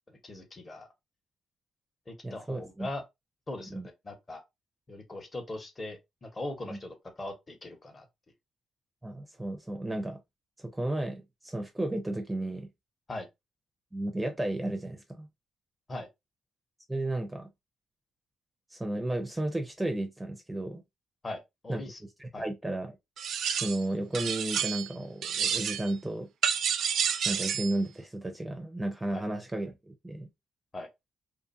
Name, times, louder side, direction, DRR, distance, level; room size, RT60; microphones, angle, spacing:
voice 1, 0.1-0.9 2.1-3.0 3.5-4.4 4.9-8.1 13.1-13.3 15.9-16.1 21.2-22.0 22.3-22.4 29.1-29.2 30.7-30.9, left 2 dB, 30° left, 1.0 m, -40 dB
voice 2, 2.2-2.9 3.7-3.9 6.7-6.8 9.0-10.2 10.6-12.7 13.9-15.3 16.9-17.5 18.7-20.8 21.7-21.8 22.2-23.0 23.5-26.3 27.2-30.3, right 1 dB, 10° right, 0.5 m, -33 dB
sound 1, 23.2-23.9 24.1-24.9 25.2-25.9 26.4-27.8, right 8 dB, 70° right, 0.4 m, -30 dB
2.5 x 2.5 x 2.5 m
cardioid pair, 90°, 0 cm